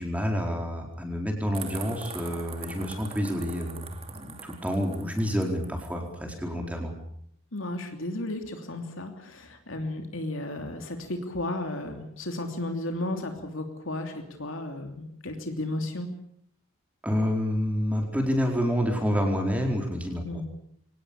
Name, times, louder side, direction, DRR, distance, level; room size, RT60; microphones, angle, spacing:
voice 1, 0.0-6.9 17.0-20.2, equal, 5° right, 2 dB, 4.5 m, -28 dB
sound 1, 1.5-6.0, right 5 dB, 25° right, 2.3 m, -43 dB
voice 2, 7.5-16.1 20.2-20.4, left 1 dB, 65° left, 5 dB, 3.0 m, -34 dB
24.5 x 18.5 x 8.8 m, 0.71 s
head